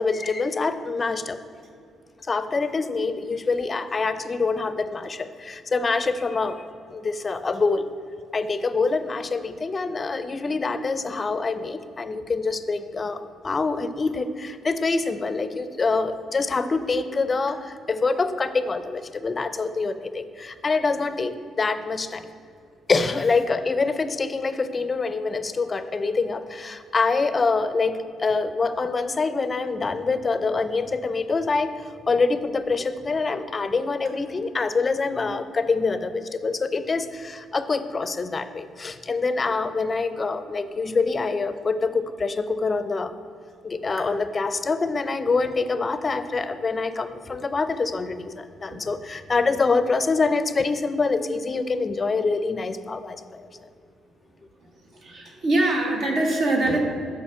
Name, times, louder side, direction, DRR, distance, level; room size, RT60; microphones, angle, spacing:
voice 1, 0.0-1.4 2.3-6.6 6.9-7.9 8.3-22.3 22.9-43.1 43.6-53.5, left 4 dB, 30° left, 11 dB, 0.5 m, -25 dB
voice 2, 55.0-56.8, right 2 dB, 60° right, 0 dB, 1.4 m, -23 dB
7.1 x 4.7 x 5.8 m, 2.4 s
cardioid pair, 90°, 0 cm